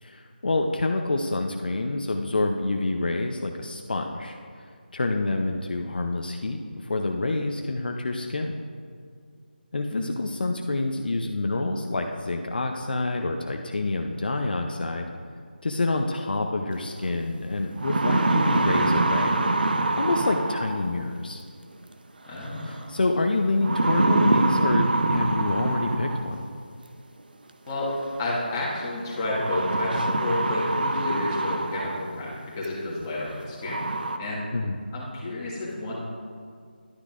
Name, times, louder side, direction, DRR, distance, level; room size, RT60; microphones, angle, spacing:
voice 1, 0.0-8.5 9.7-15.1 15.6-21.4 22.6-26.4 34.5-34.8, left 2 dB, 60° left, 3 dB, 0.6 m, -27 dB
sound 1, 17.0-17.1 17.6-21.0 22.4-22.8 23.6-26.4 27.7-27.8 29.3-32.2 32.6-32.7 33.3-33.4 33.6-34.2, right 2 dB, 60° right, 0.7 m, -25 dB
voice 2, 22.2-22.7 27.7-33.8 34.2-34.4 34.9-35.9, left 1 dB, 15° left, -7 dB, 1.7 m, -30 dB
11.5 x 9.8 x 2.5 m, 2.1 s
figure-of-eight pair, 165°, 6 cm